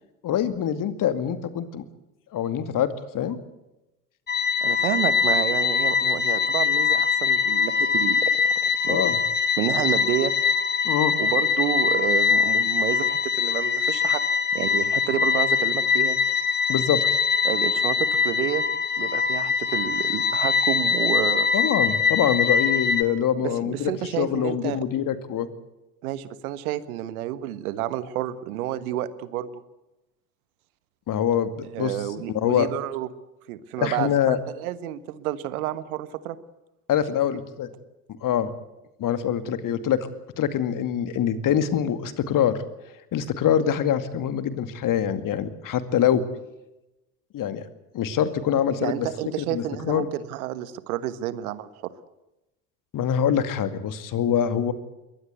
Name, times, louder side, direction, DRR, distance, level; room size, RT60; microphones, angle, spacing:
voice 1, 0.2-1.8 2.3-3.4 8.9-9.2 10.8-11.1 16.7-17.0 21.5-23.9 24.2-25.5 31.1-32.0 32.3-32.7 33.8-34.4 36.9-37.7 38.2-38.5 39.0-40.1 40.4-42.6 43.1-46.2 47.3-47.6 47.9-49.1 49.5-50.1 52.9-54.7, left 9 dB, 45° left, 12 dB, 2.3 m, -24 dB
sound 1, 4.3-23.0, left 6 dB, 20° left, 2.5 m, -23 dB
voice 2, 4.6-8.3 8.6-9.0 9.6-10.3 11.2-14.2 14.5-16.2 17.4-18.6 19.0-21.5 23.4-24.8 26.0-29.5 31.7-33.1 33.5-36.4 48.8-51.7, right 12 dB, 70° right, 15 dB, 1.5 m, -29 dB
22.5 x 19.0 x 8.2 m, 0.96 s
figure-of-eight pair, 65°, 45 cm